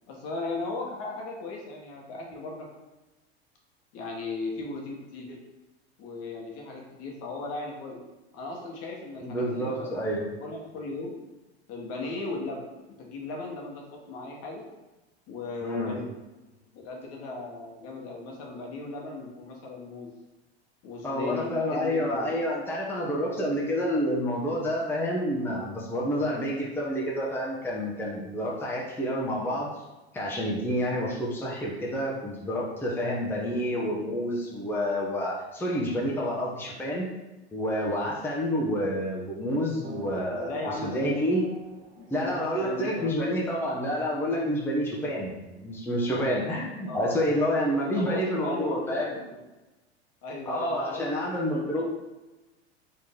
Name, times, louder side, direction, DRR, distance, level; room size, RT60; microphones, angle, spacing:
voice 1, 0.1-2.7 3.9-5.4 6.0-8.0 8.3-10.0 10.4-11.1 11.7-12.7 13.0-14.6 15.3-16.1 16.7-20.1 20.8-22.3 40.3-41.4 41.9-43.4 46.9-47.4 47.9-49.2 50.2-51.3 51.6-51.7, left 3 dB, 50° left, 0 dB, 1.3 m, -37 dB
voice 2, 9.2-10.3 15.6-16.0 21.0-29.7 30.1-37.1 37.5-41.4 42.1-49.2 50.5-51.9, equal, 5° left, -4 dB, 0.8 m, -29 dB
Race car auto racing / Accelerating revving vroom, 39.8-45.9, right 4 dB, 80° right, 0.7 m, -46 dB
4.4 x 3.1 x 3.6 m, 1.1 s
hypercardioid pair, 95°, 32 cm